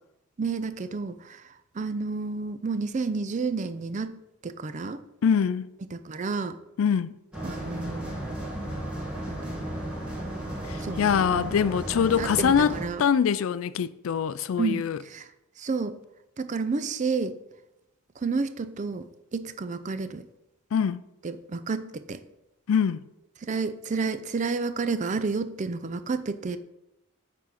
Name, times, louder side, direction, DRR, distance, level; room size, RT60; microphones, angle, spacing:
voice 1, 0.4-1.4 1.8-5.0 5.9-6.6 7.4-8.3 9.3-9.7 10.8-11.0 11.3-11.5 12.2-13.0 14.6-15.3 15.6-16.0 16.4-17.4 18.2-19.0 19.3-20.2 21.2-22.2 23.5-26.6, right 4 dB, 35° right, 0.4 m, -30 dB
voice 2, 5.2-5.7 6.8-7.1 10.7-12.7 13.0-15.0 20.7-21.0 22.7-23.0, left 7 dB, 65° left, 0.3 m, -24 dB
sound 1, 7.3-12.8, right 1 dB, 5° right, 2.0 m, -34 dB
9.4 x 3.8 x 5.8 m
head